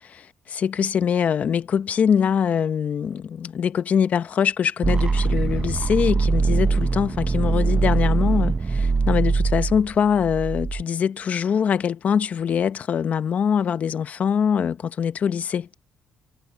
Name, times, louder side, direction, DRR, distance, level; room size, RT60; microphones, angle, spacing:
voice 1, 0.0-15.7, left 7 dB, 50° left, 1.1 m, -23 dB
sound 1, 4.8-10.8, right 4 dB, 30° right, 0.9 m, -22 dB
cardioid pair, 90°, 3 cm